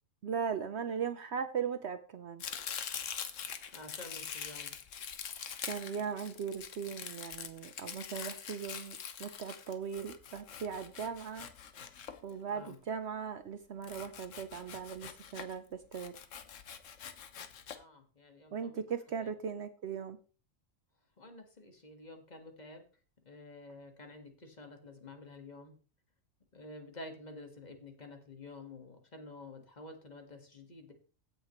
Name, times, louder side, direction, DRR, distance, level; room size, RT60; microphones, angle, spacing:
voice 1, 0.2-2.4 5.6-11.5 12.2-15.6 15.9-16.2 18.5-20.2, right 6 dB, 60° right, 10 dB, 0.9 m, -38 dB
Domestic sounds home sounds, 2.4-12.7 13.8-15.6 15.9-17.8, left 7 dB, 70° left, 1.3 m, -44 dB
voice 2, 3.7-4.7 12.5-12.8 17.7-18.8 21.2-22.8 23.3-25.8 26.5-30.9, left 2 dB, 30° left, 5 dB, 1.8 m, -50 dB
16.0 x 6.6 x 3.1 m, 0.36 s
omnidirectional pair, 1.4 m